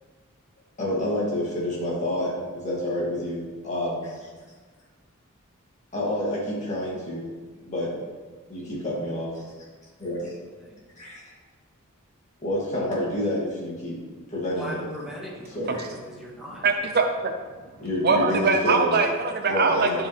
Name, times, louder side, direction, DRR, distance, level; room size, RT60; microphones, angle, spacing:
voice 1, 0.8-4.3 5.9-7.3 7.7-8.1 8.5-9.4 10.0-10.3 11.0-11.2 12.4-14.0 14.3-14.8 15.5-15.9 17.8-19.0 19.4-20.0, left 1 dB, 35° left, -6 dB, 2.6 m, -28 dB
voice 2, 14.5-16.6, left 1 dB, ahead, -6 dB, 1.7 m, -39 dB
voice 3, 16.6-17.3 18.0-20.1, right 4 dB, 45° right, 5 dB, 0.5 m, -22 dB
11.5 x 4.8 x 3.4 m, 1.4 s
head